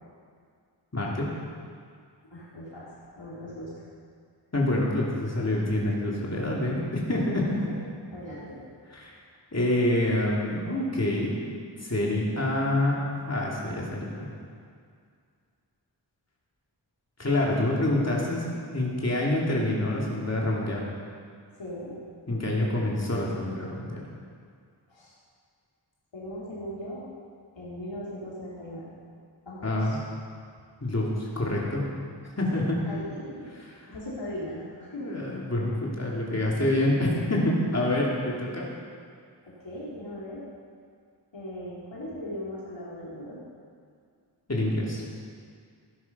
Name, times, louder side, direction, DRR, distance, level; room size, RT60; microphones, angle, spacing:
voice 1, 0.9-1.3 4.5-7.4 8.9-9.1 9.5-11.4 11.8-13.0 13.3-14.3 17.2-18.4 18.7-20.8 22.3-24.0 29.6-30.0 30.8-31.8 32.4-32.6 33.5-33.7 35.0-38.6 44.5-45.0, left 1 dB, 35° left, -4 dB, 3.0 m, -27 dB
voice 2, 2.3-2.9 3.2-3.7 7.5-7.6 8.1-8.6 21.6-22.0 24.9-25.1 26.1-27.1 27.6-29.0 29.5-30.0 32.5-33.5 33.9-35.2 39.4-40.4 41.3-43.4, left 1 dB, 80° left, -8 dB, 3.5 m, -38 dB
15.0 x 11.0 x 5.5 m, 2.2 s
wide cardioid pair, 65°, 44 cm